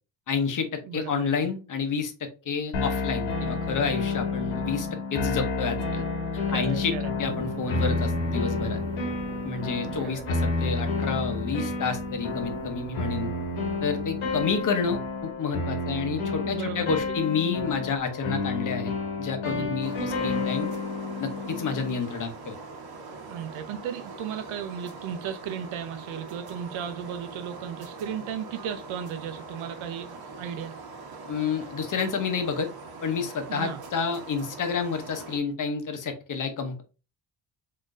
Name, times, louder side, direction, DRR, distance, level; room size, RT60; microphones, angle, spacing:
voice 1, 0.3-6.0 6.5-6.9 7.2-8.8 9.4-13.3 13.8-18.9 19.2-20.7 21.2-22.6 31.3-32.7 33.0-36.8, left 5 dB, 40° left, 0.9 m, -29 dB
voice 2, 0.9-1.5 6.5-7.2 9.8-10.2 10.7-10.8 16.4-17.0 19.4-19.8 23.2-30.7 33.5-33.8, right 8 dB, 85° right, 0.8 m, -36 dB
sound 1, 2.7-22.0, left 3 dB, 85° left, 1.7 m, -30 dB
sound 2, 7.2-15.0, right 7 dB, 35° right, 0.4 m, -42 dB
sound 3, 19.8-35.4, right 3 dB, 50° right, 1.1 m, -42 dB
3.8 x 3.8 x 2.5 m
cardioid pair, 175°, 47 cm